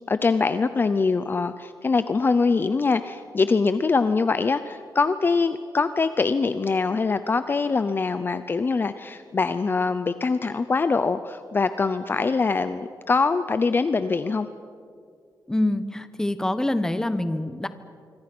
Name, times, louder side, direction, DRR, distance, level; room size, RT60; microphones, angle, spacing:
voice 1, 0.1-14.5, left 4 dB, 30° left, 12 dB, 0.6 m, -23 dB
voice 2, 15.5-17.7, left 1 dB, 10° left, 11 dB, 1.0 m, -25 dB
26.0 x 25.0 x 6.1 m, 2.2 s
wide cardioid pair, 165°, 7 cm